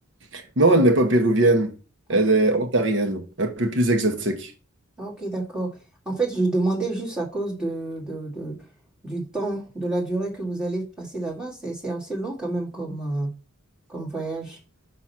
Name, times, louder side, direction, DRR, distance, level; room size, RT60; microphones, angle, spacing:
voice 1, 0.3-1.7 2.1-4.5, right 2 dB, 60° right, 1.1 m, -20 dB
voice 2, 5.0-5.8 6.0-8.6 9.0-13.3 13.9-14.6, right 2 dB, 5° right, 2.7 m, -28 dB
6.1 x 6.0 x 5.9 m
head